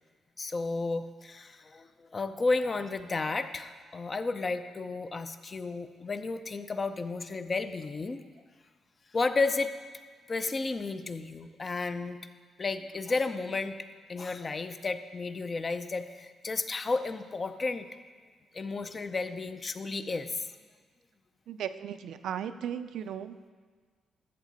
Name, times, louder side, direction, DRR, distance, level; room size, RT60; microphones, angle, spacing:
voice 1, 0.4-8.2 9.1-9.7 10.3-12.2 12.6-13.8 14.1-18.0 18.5-20.5, left 3 dB, 30° left, 10 dB, 0.5 m, -32 dB
voice 2, 21.5-23.5, right 9 dB, 75° right, 11 dB, 0.5 m, -36 dB
13.0 x 7.4 x 4.0 m, 1.6 s
cardioid pair, 120°, 0 cm